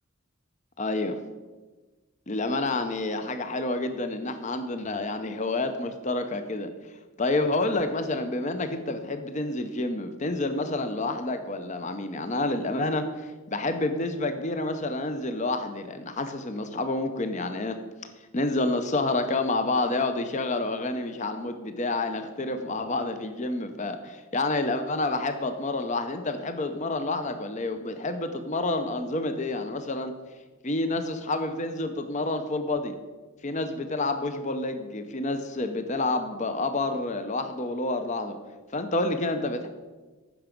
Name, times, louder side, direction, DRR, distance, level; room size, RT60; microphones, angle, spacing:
voice 1, 0.8-1.2 2.3-6.7 7.2-17.8 18.3-30.1 30.6-32.9 33.4-38.4 38.7-39.7, left 2 dB, 35° left, 8 dB, 0.6 m, -29 dB
15.0 x 6.0 x 5.1 m, 1.3 s
head